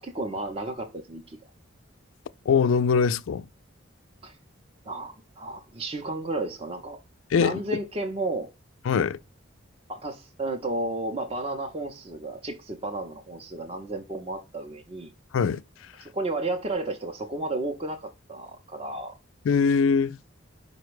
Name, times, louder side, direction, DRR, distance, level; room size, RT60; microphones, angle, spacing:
voice 1, 0.0-1.4 4.2-4.4 4.9-7.0 7.4-8.5 9.9-15.1 16.0-19.1, right 2 dB, 30° right, 0.6 m, -32 dB
voice 2, 2.5-3.5 7.3-7.6 8.9-9.2 15.3-15.6 19.5-20.2, left 6 dB, 75° left, 0.3 m, -22 dB
5.1 x 2.2 x 4.6 m
head